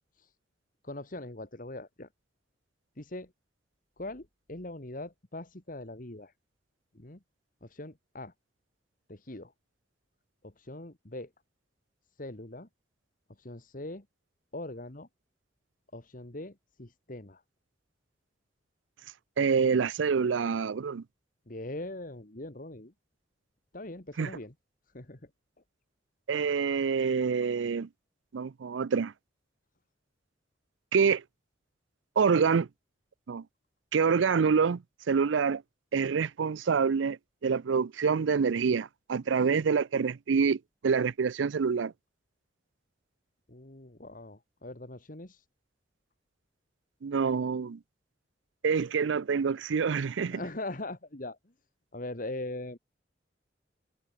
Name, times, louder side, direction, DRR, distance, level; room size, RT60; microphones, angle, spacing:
voice 1, 0.8-2.1 3.0-3.3 4.0-6.3 6.9-7.2 7.6-8.3 9.1-9.5 10.4-11.3 12.2-12.7 13.4-14.1 14.5-15.1 15.9-17.4 21.5-22.9 23.7-24.5 24.9-25.3 39.4-39.5 43.5-45.4 50.3-51.5 51.9-52.8, left 2 dB, 45° left, 2.0 m, -41 dB
voice 2, 19.4-21.0 24.2-24.3 26.3-27.9 28.3-29.1 30.9-31.2 32.2-32.7 33.3-33.4 33.9-35.6 35.9-41.9 47.0-47.8 48.6-50.4, right 5 dB, 80° right, 0.5 m, -26 dB
head